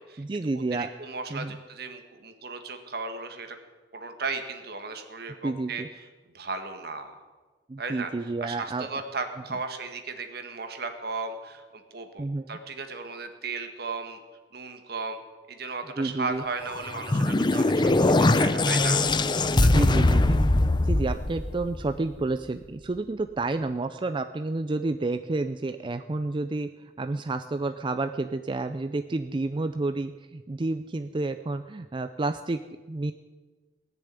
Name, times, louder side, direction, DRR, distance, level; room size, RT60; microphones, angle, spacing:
voice 1, 0.2-0.9 1.3-1.6 5.4-5.9 7.7-8.9 12.2-12.6 16.0-16.4 19.5-20.4 20.8-32.6 32.9-33.1, right 2 dB, 30° right, 9 dB, 0.4 m, -30 dB
voice 2, 0.7-3.6 3.9-5.8 6.3-7.2 7.8-14.2 14.5-15.2 15.5-19.0 19.5-20.1, right 4 dB, 60° right, 7 dB, 1.7 m, -36 dB
sound 1, 16.7-22.1, left 2 dB, 25° left, 0.6 m, -22 dB
19.0 x 6.9 x 9.7 m, 1.3 s
head